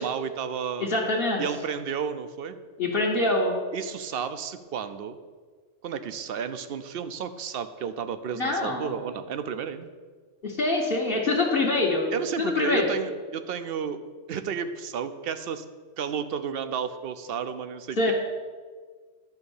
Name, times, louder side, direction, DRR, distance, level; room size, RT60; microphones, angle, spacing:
voice 1, 0.0-0.9 1.4-2.6 3.7-5.2 5.8-9.9 12.1-14.0 14.3-15.7 16.0-18.1, right 7 dB, 60° right, 11 dB, 0.7 m, -32 dB
voice 2, 0.8-1.4 2.8-3.6 8.4-8.9 10.4-12.0 12.4-12.9 18.0-18.1, left 2 dB, 50° left, -3 dB, 1.3 m, -24 dB
10.5 x 3.8 x 7.0 m, 1.5 s
omnidirectional pair, 1.2 m